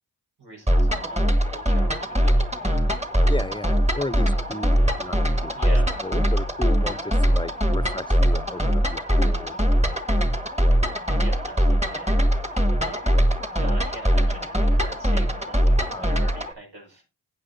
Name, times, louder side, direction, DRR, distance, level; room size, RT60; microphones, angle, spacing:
voice 1, 0.4-3.4 5.5-5.9 11.2-13.1 13.6-17.0, right 2 dB, 80° right, 5.6 m, -41 dB
sound 1, 0.7-16.5, equal, 15° right, 1.6 m, -21 dB
voice 2, 3.3-5.7 6.0-9.6 9.9-10.0 15.8-16.2, left 1 dB, 10° left, 0.7 m, -34 dB
14.5 x 9.0 x 2.7 m
wide cardioid pair, 50°, 39 cm